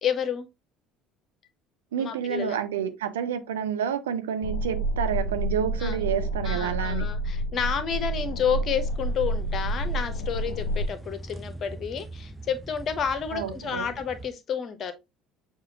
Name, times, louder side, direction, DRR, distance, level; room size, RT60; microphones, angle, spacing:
voice 1, 0.0-0.5 2.0-2.6 5.8-6.0 6.4-14.9, left 7 dB, 40° left, 0.7 m, -30 dB
voice 2, 1.9-7.1 13.3-13.9, right 8 dB, 70° right, 0.5 m, -29 dB
sound 1, 4.4-10.9, right 1 dB, 70° left, 0.3 m, -29 dB
sound 2, 8.9-14.3, right 2 dB, 5° right, 0.5 m, -43 dB
6.5 x 2.4 x 2.8 m
figure-of-eight pair, 60°, 0 cm